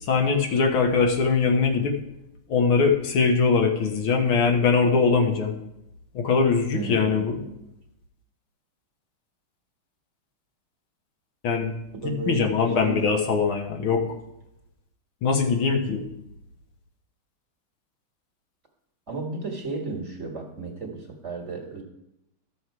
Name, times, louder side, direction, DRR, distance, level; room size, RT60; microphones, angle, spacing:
voice 1, 0.0-2.0 2.5-5.6 6.1-7.4 11.4-11.7 12.0-14.1 15.2-16.1, left 5 dB, 75° left, 2 dB, 2.1 m, -22 dB
voice 2, 6.7-7.7 12.0-12.5 12.8-13.1 19.1-21.8, right 3 dB, 35° right, 1 dB, 1.6 m, -34 dB
13.5 x 6.3 x 4.7 m, 0.84 s
omnidirectional pair, 2.3 m